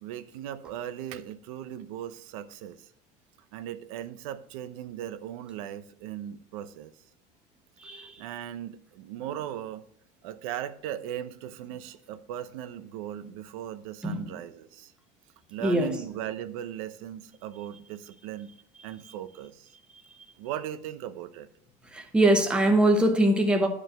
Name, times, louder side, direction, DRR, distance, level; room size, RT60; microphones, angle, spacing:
voice 1, 0.0-2.8 3.5-6.9 8.0-9.8 10.2-14.9 15.5-18.5 18.8-19.7 20.4-21.5, right 11 dB, 80° right, 0.8 m, -38 dB
voice 2, 7.8-8.2 14.0-14.3 15.6-16.0 21.9-23.7, right 1 dB, 5° right, 1.0 m, -22 dB
11.5 x 5.1 x 7.5 m
cardioid pair, 175°, 17 cm